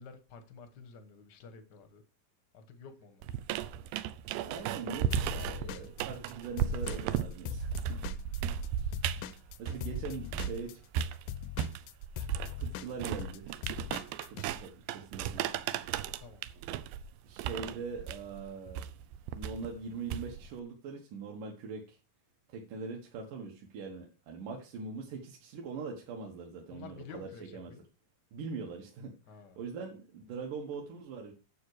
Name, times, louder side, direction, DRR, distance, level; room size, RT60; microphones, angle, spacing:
voice 1, 0.0-2.0 2.5-3.2 16.2-16.5 26.7-27.8 29.3-29.6, left 5 dB, 60° left, 1.1 m, -51 dB
sound 1, 3.2-10.6 10.9-20.6, right 9 dB, 90° right, 2.5 m, -35 dB
voice 2, 4.4-8.0 8.7-9.0 9.6-10.8 12.6-13.5 14.3-15.5 17.2-18.8 19.4-22.0 22.5-27.7 28.3-29.1 29.6-31.3, right 4 dB, 70° right, 2.8 m, -42 dB
Drum kit / Drum, 5.1-8.7 8.9-14.5, left 11 dB, 75° left, 2.0 m, -41 dB
9.4 x 7.4 x 4.9 m
omnidirectional pair, 4.1 m